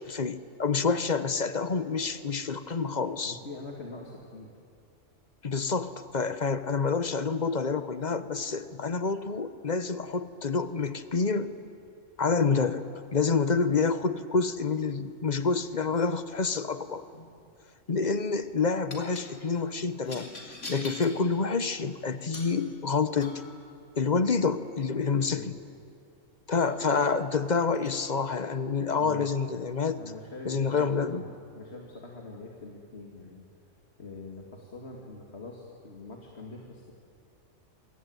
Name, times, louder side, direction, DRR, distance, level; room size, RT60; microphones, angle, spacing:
voice 1, 0.1-3.4 5.4-11.5 12.2-12.8 13.1-17.0 17.9-23.4 24.0-25.5 26.5-30.0 30.4-31.2, left 4 dB, 40° left, 12 dB, 1.1 m, -28 dB
voice 2, 3.3-4.5 25.3-25.6 28.9-29.3 30.0-33.4 34.0-36.9, left 2 dB, 60° left, 0 dB, 2.6 m, -44 dB
sound 1, 17.0-17.3 18.9-19.3 20.0-21.2 22.3-22.6 23.2-23.5 25.9-26.0 26.6-27.0 27.7-28.0, left 2 dB, 75° left, 4.5 m, -43 dB
27.0 x 23.5 x 9.5 m, 2.4 s
omnidirectional pair, 1.3 m